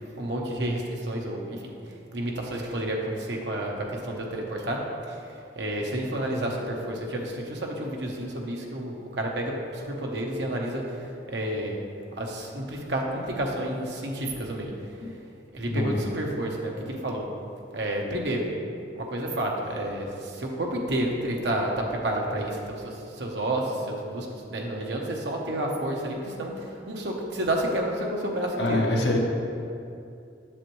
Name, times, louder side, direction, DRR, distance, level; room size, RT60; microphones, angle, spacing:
voice 1, 0.2-1.7 2.1-4.8 5.1-5.2 5.6-11.8 12.1-14.7 15.5-17.3 17.7-18.4 19.0-29.1, right 1 dB, 75° right, 0 dB, 1.0 m, -30 dB
voice 2, 28.6-29.2, left 1 dB, 70° left, -1 dB, 1.1 m, -24 dB
7.5 x 7.0 x 3.1 m, 2.6 s
head